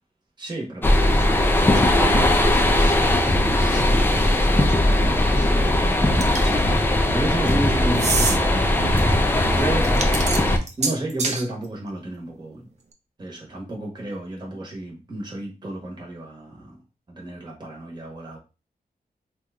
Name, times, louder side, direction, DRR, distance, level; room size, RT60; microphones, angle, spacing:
voice 1, 0.4-3.0 3.3-9.9 10.8-12.7 13.2-16.7 17.2-18.4, right 1 dB, 25° right, -1 dB, 0.9 m, -33 dB
sound 1, 0.8-10.6, left 1 dB, 15° left, 0.4 m, -19 dB
sound 2, 6.2-6.6 7.9-8.4 9.8-11.4, right 4 dB, 45° right, 0.5 m, -25 dB
2.9 x 2.2 x 3.5 m, 0.30 s
wide cardioid pair, 145°, 16 cm